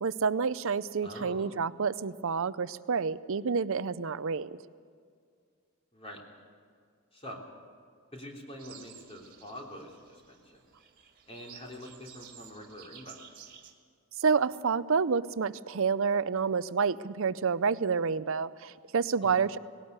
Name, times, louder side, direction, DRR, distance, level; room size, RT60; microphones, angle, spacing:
voice 1, 0.0-4.5 14.2-19.6, right 5 dB, 65° right, 16 dB, 0.6 m, -29 dB
voice 2, 1.0-1.5 5.9-6.2 7.1-7.4 8.1-10.6 11.3-13.2 19.2-19.4, equal, 25° left, 0 dB, 3.3 m, -45 dB
sound 1, 8.6-13.7, right 8 dB, 40° right, 2.1 m, -53 dB
19.5 x 17.5 x 8.1 m, 2.1 s
head